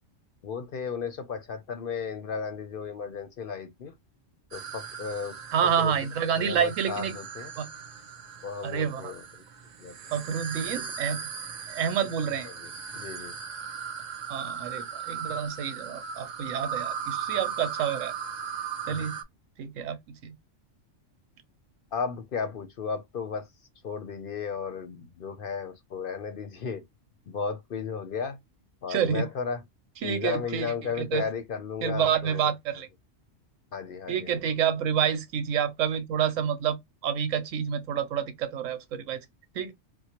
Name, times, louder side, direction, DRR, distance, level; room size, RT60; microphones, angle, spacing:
voice 1, 0.4-3.9 4.5-5.4 5.6-6.0 6.3-7.5 8.4-9.4 9.8-9.9 12.4-13.3 18.9-19.1 21.9-23.5 23.8-26.8 27.3-28.4 28.8-29.6 30.0-32.5 33.7-34.4, left 6 dB, 55° left, 0.6 m, -34 dB
sound 1, 4.5-19.2, right 7 dB, 50° right, 0.5 m, -38 dB
voice 2, 5.5-7.1 7.6-7.7 8.6-9.1 10.1-11.2 11.7-12.5 14.3-18.1 18.9-19.2 19.6-20.0 20.2-20.3 28.9-29.2 30.0-30.7 31.0-31.2 31.8-32.9 34.1-36.8 37.0-39.2 39.5-39.7, right 8 dB, 90° right, 1.1 m, -28 dB
4.5 x 2.0 x 2.8 m
omnidirectional pair, 1.3 m